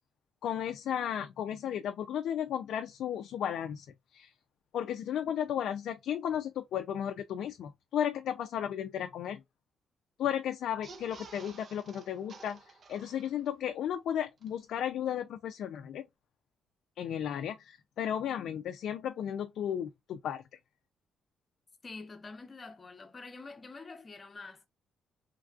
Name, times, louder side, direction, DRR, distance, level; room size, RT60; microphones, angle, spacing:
voice 1, 0.4-3.9 4.1-4.3 4.7-9.4 10.2-16.0 17.0-20.4, left 9 dB, 75° left, 0.3 m, -34 dB
sound 1, 10.7-13.7 14.1-14.2 14.4-14.5, right 4 dB, 45° right, 0.7 m, -52 dB
voice 2, 21.8-24.7, left 3 dB, 30° left, 0.8 m, -46 dB
3.2 x 2.4 x 2.3 m
cardioid pair, 90°, 0 cm